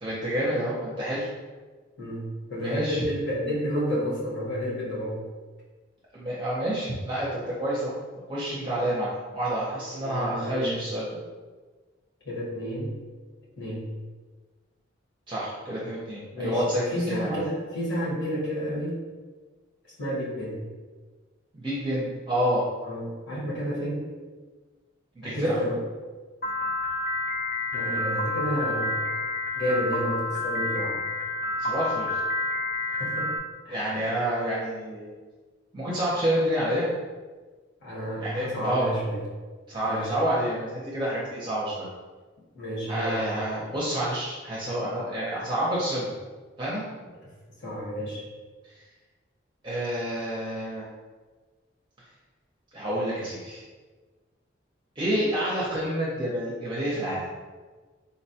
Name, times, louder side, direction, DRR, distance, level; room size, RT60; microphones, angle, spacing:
voice 1, 0.0-1.3 2.6-3.0 6.1-7.9 8.3-11.1 15.3-17.4 21.5-22.7 25.2-25.6 31.6-32.2 33.7-35.1 35.7-36.9 38.2-38.9 39.7-41.9 42.9-46.1 46.6-46.8 48.6-48.7 49.6-50.9 52.7-53.6 55.0-57.3, right 1 dB, 25° right, -7 dB, 0.5 m, -28 dB
voice 2, 2.0-5.2 9.9-10.8 12.2-13.0 13.6-13.9 16.3-19.0 20.0-20.7 22.8-24.1 25.2-25.8 27.7-29.0 29.5-31.0 32.8-33.3 33.6-34.1 37.8-39.2 39.8-40.1 42.5-43.2 47.6-48.3, equal, 70° left, -7 dB, 1.2 m, -31 dB
Piano, 26.4-33.4, left 2 dB, 45° left, 0.5 m, -29 dB
3.9 x 2.2 x 2.7 m, 1.3 s
head